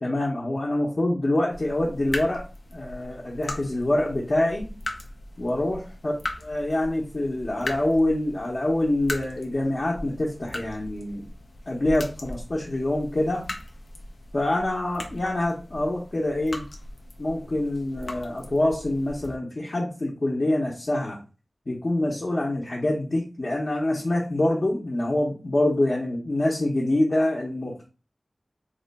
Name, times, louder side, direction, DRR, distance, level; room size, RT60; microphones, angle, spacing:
voice 1, 0.0-2.4 2.7-4.7 5.4-6.1 6.4-11.2 11.7-13.4 14.3-16.6 17.2-21.2 21.7-27.9, left 1 dB, 50° left, -3 dB, 0.7 m, -25 dB
sound 1, 1.5-19.4, left 1 dB, 85° left, 0.5 m, -39 dB
2.8 x 2.2 x 4.0 m, 0.33 s
wide cardioid pair, 70°, 0 cm